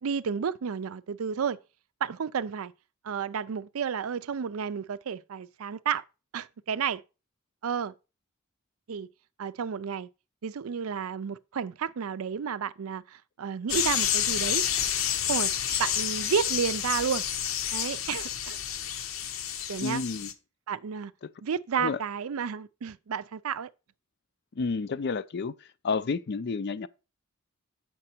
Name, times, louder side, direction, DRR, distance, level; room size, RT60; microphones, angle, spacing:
voice 1, 0.0-1.6 2.0-2.7 3.0-6.0 6.3-7.0 7.6-7.9 8.9-9.1 9.4-10.1 10.4-14.6 15.3-15.5 15.8-17.3 17.7-18.6 19.7-20.0 20.7-21.1 21.4-23.7, right 7 dB, 85° right, 0.5 m, -31 dB
sound 1, 13.7-20.3, left 9 dB, 70° left, 0.8 m, -29 dB
voice 2, 19.8-20.3 21.8-22.0 24.6-25.5 25.8-26.9, left 4 dB, 50° left, 0.5 m, -30 dB
7.7 x 5.9 x 4.4 m
head